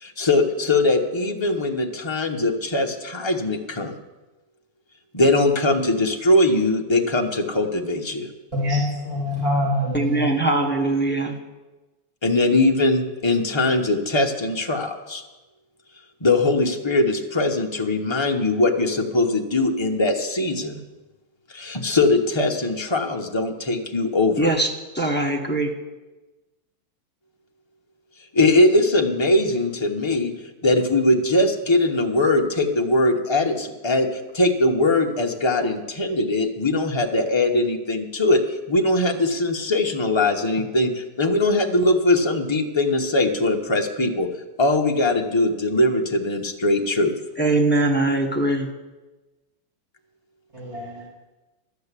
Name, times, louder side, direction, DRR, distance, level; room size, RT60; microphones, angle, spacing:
voice 1, 0.0-3.9 5.1-8.3 8.7-8.8 12.2-15.2 16.2-20.8 21.5-24.5 28.3-30.3 30.6-44.3 44.6-47.1, left 2 dB, 25° left, 2 dB, 0.6 m, -21 dB
voice 2, 8.5-10.3 50.5-50.9, left 1 dB, 15° right, -5 dB, 2.5 m, -24 dB
voice 3, 9.9-11.4 24.4-24.7 24.9-25.7 47.4-48.7, right 2 dB, 5° left, 0 dB, 0.9 m, -21 dB
12.0 x 8.0 x 8.3 m, 1.1 s
omnidirectional pair, 2.1 m